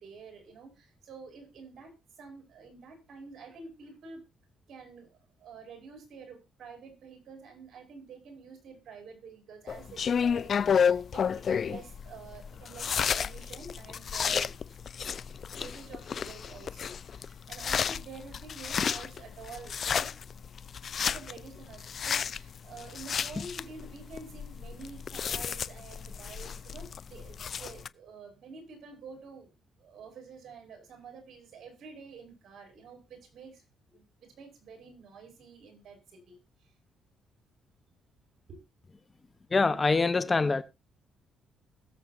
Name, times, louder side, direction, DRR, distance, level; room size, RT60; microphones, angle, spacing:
voice 1, 0.0-4.2 4.7-14.8 15.5-20.1 21.0-29.5 29.8-36.7 38.5-38.6, right 4 dB, 60° right, 5.6 m, -48 dB
sound 1, 9.7-27.9, left 7 dB, 50° left, 0.5 m, -32 dB
voice 2, 39.5-40.6, left 4 dB, 30° left, 1.0 m, -24 dB
21.5 x 7.4 x 2.7 m
cardioid pair, 90°, 0 cm